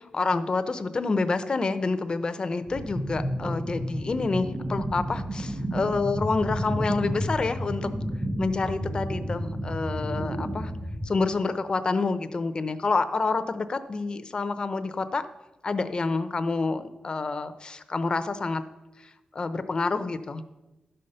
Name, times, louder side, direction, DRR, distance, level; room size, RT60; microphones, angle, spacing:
voice 1, 0.1-7.9 8.4-10.7 11.0-15.2 15.6-18.6 19.3-20.4, left 3 dB, 35° left, 11 dB, 0.7 m, -28 dB
sound 1, 2.7-11.1, equal, 15° right, 0.8 m, -31 dB
11.5 x 5.6 x 6.6 m, 1.1 s
wide cardioid pair, 120°, 3 cm